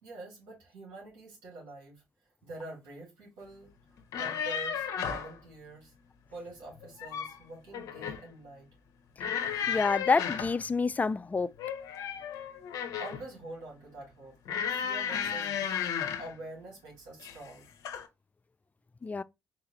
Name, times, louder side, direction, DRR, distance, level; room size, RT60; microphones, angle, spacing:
voice 1, 0.0-2.0 2.4-3.7 4.2-5.9 6.3-8.7 13.0-15.8 16.2-17.7, right 2 dB, 75° right, 2.0 m, -46 dB
sound 1, 4.0-5.3 6.8-7.4 7.7-8.3 9.2-10.6 11.6-13.3 14.5-16.3 17.2-17.5 17.8-18.1, left 8 dB, 70° left, 0.6 m, -34 dB
voice 2, 9.7-11.5 19.0-19.2, left 4 dB, 25° left, 0.3 m, -28 dB
4.1 x 2.4 x 2.9 m
hypercardioid pair, 50°, 6 cm